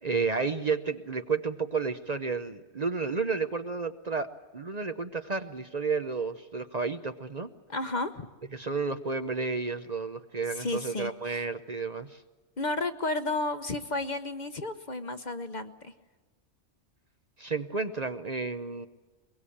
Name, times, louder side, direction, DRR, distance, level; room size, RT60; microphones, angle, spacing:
voice 1, 0.0-4.3 4.5-7.5 8.5-12.2 17.4-18.9, right 4 dB, 40° right, 8 dB, 0.9 m, -31 dB
voice 2, 7.7-8.3 10.6-11.5 12.6-15.9, left 2 dB, 40° left, 10 dB, 1.0 m, -32 dB
22.5 x 22.0 x 8.6 m, 1.2 s
omnidirectional pair, 1.2 m